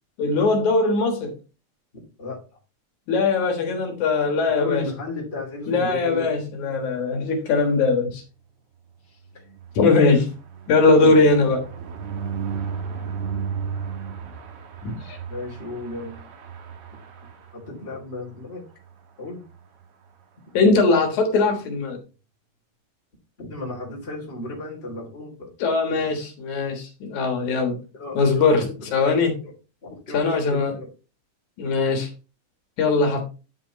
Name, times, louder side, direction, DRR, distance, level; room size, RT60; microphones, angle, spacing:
voice 1, 0.2-1.3 3.1-4.8 5.7-8.2 9.8-10.3 10.7-11.6 14.8-15.2 20.5-22.0 25.6-27.8 28.2-29.4 30.1-30.8 31.6-32.1 32.8-33.3, left 3 dB, 75° left, 2.9 m, -20 dB
voice 2, 4.4-6.3 11.0-11.2 12.5-12.6 15.3-16.2 17.5-18.6 19.2-19.4 23.4-25.5 26.0-26.2 27.9-28.7 29.4-29.5 29.8-30.9, left 2 dB, 20° left, 3.1 m, -34 dB
sound 1, 9.2-18.0 18.5-18.6 18.9-19.0 19.3-19.5, right 6 dB, 60° right, 1.9 m, -34 dB
10.0 x 6.1 x 3.1 m
omnidirectional pair, 3.4 m